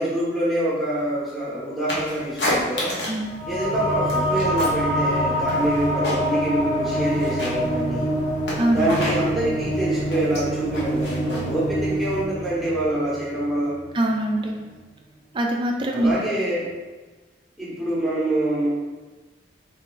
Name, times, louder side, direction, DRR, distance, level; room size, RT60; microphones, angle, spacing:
voice 1, 0.0-2.9 3.5-8.1 8.7-13.7 15.9-16.7 17.6-18.7, right 1 dB, ahead, -9 dB, 0.8 m, -26 dB
sound 1, 1.9-3.3 3.6-4.9 5.2-6.5 6.8-12.2, left 1 dB, 70° left, 1.0 m, -30 dB
sound 2, 3.2-14.2, equal, 35° left, 0.9 m, -26 dB
voice 2, 8.6-8.9 13.9-14.6 15.3-16.1, right 1 dB, 25° right, 2 dB, 0.3 m, -23 dB
3.5 x 3.2 x 3.8 m, 1.3 s
head